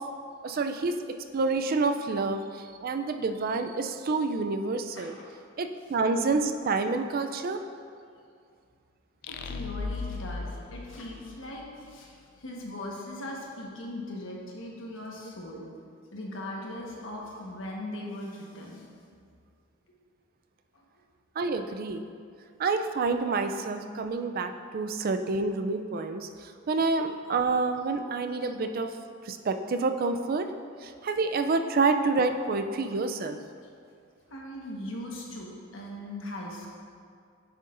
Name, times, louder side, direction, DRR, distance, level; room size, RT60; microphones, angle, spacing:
voice 1, 0.4-2.4 2.8-5.2 5.6-7.6 21.4-22.1 22.6-26.3 26.7-28.9 29.3-30.5 30.8-33.4, right 3 dB, 45° right, 7 dB, 0.4 m, -28 dB
voice 2, 4.9-5.3 9.3-15.7 16.1-18.9 20.7-20.8 34.3-36.8, left 1 dB, 70° left, -2 dB, 1.3 m, -39 dB
sound 1, 9.2-11.9, left 3 dB, 50° left, 0.4 m, -37 dB
9.4 x 6.5 x 2.6 m, 2.3 s
head